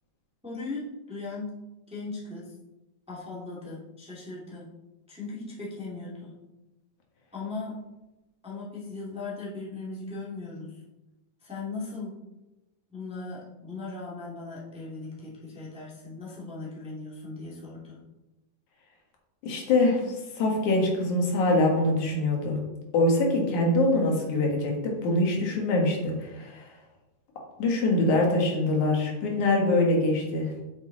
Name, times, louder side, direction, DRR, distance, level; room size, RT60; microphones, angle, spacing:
voice 1, 0.4-1.6 1.9-2.5 3.1-4.7 5.1-6.3 7.3-7.9 8.4-10.8 11.4-12.2 12.9-18.0, left 3 dB, ahead, -7 dB, 1.7 m, -38 dB
voice 2, 19.4-22.6 22.9-26.6 27.6-30.6, left 2 dB, 75° left, 0 dB, 2.9 m, -24 dB
8.4 x 7.2 x 3.9 m, 1.0 s
omnidirectional pair, 3.4 m